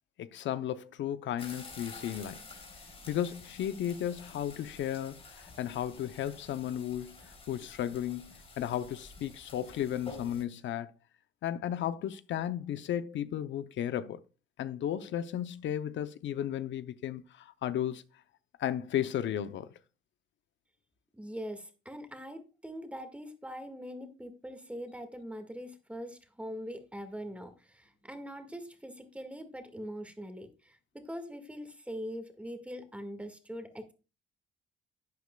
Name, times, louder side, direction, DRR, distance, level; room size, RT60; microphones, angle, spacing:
voice 1, 0.2-2.4 3.1-10.9 11.4-14.2 14.6-18.0 18.6-19.7, left 10 dB, 70° left, 0.7 m, -34 dB
sound 1, 1.4-10.4, left 3 dB, 30° left, 3.7 m, -50 dB
voice 2, 21.1-33.9, equal, 5° right, 1.7 m, -42 dB
11.5 x 8.1 x 2.3 m
cardioid pair, 90°, 20 cm